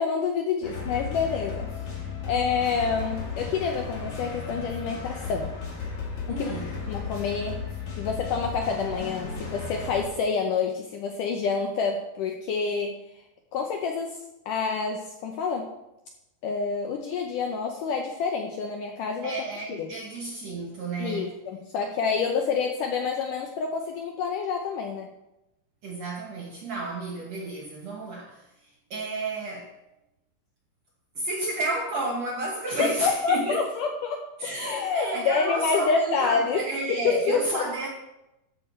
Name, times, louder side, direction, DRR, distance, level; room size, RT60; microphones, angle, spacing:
voice 1, 0.0-1.7 2.2-5.5 6.3-6.5 6.9-7.6 8.0-13.0 13.5-15.7 16.4-19.3 19.7-19.9 21.0-25.1 32.6-36.6 36.9-37.6, left 5 dB, 75° left, 3 dB, 1.9 m, -28 dB
sound 1, 0.6-10.0, left 5 dB, 40° left, 3.0 m, -35 dB
voice 2, 6.3-6.8 19.2-21.4 25.8-28.5 28.9-29.7 31.2-33.6 34.4-37.9, right 2 dB, 65° right, -1 dB, 1.7 m, -31 dB
13.5 x 6.9 x 4.3 m, 0.90 s
omnidirectional pair, 4.6 m